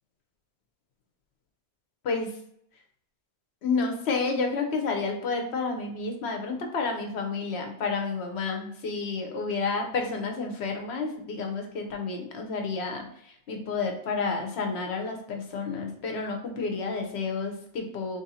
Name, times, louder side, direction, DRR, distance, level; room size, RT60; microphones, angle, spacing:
voice 1, 2.0-2.4 3.6-18.2, left 4 dB, 85° left, 3 dB, 1.1 m, -30 dB
3.3 x 2.6 x 4.0 m, 0.68 s
omnidirectional pair, 1.1 m